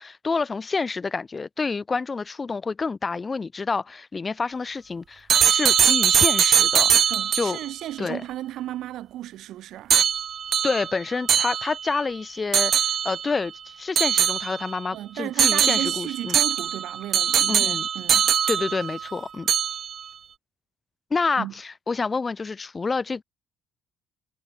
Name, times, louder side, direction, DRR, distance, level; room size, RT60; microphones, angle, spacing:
voice 1, 0.0-7.6 8.0-8.2 10.6-16.4 17.5-17.9 18.5-19.5 21.1-23.2, left 4 dB, 25° left, 0.5 m, -28 dB
sound 1, 5.3-7.7 9.9-12.0 12.5-13.3 14.0-14.9 15.4-19.1 19.5-20.0, right 8 dB, 45° right, 0.3 m, -22 dB
voice 2, 7.1-9.9 14.9-18.3 21.4-21.5, right 13 dB, 70° right, 1.1 m, -34 dB
cardioid pair, 130°, 0 cm